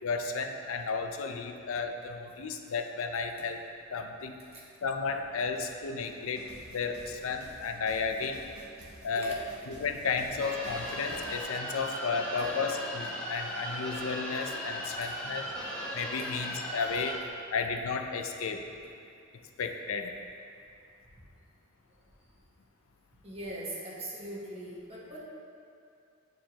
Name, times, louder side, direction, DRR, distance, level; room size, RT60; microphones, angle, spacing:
voice 1, 0.0-3.6 3.9-4.4 4.8-8.5 9.0-9.4 9.7-15.5 15.9-17.2 17.5-18.7 19.6-20.2, left 5 dB, 80° left, 5 dB, 0.5 m, -33 dB
sound 1, 5.5-5.6 6.0-11.4, right 1 dB, 90° right, 1.5 m, -51 dB
sound 2, 10.4-17.2, equal, 5° left, 0.9 m, -37 dB
voice 2, 23.2-25.2, right 1 dB, 30° right, -5 dB, 1.2 m, -41 dB
9.2 x 4.4 x 2.9 m, 2.4 s
head